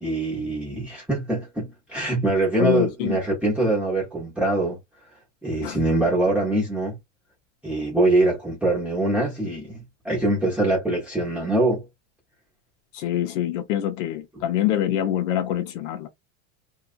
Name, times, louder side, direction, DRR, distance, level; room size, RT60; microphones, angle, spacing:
voice 1, 0.0-4.8 5.4-7.0 7.6-11.8, right 2 dB, 5° right, 0.9 m, -23 dB
voice 2, 2.6-3.2 5.6-5.8 12.9-16.1, left 11 dB, 90° left, 0.7 m, -25 dB
2.7 x 2.4 x 2.4 m
supercardioid pair, 150°, 37 cm